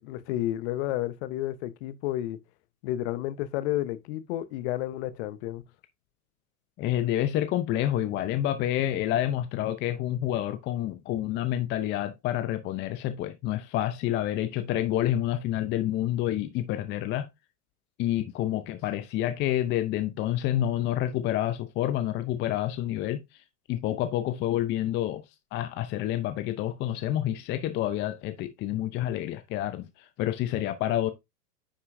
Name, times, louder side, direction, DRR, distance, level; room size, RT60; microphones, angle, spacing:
voice 1, 0.0-2.4 2.8-5.6, left 14 dB, 45° left, 1.0 m, -31 dB
voice 2, 6.8-17.3 18.0-23.2 23.7-25.2 25.5-31.1, left 12 dB, 25° left, 0.6 m, -28 dB
9.9 x 5.4 x 2.6 m
hypercardioid pair, 115°, 47 cm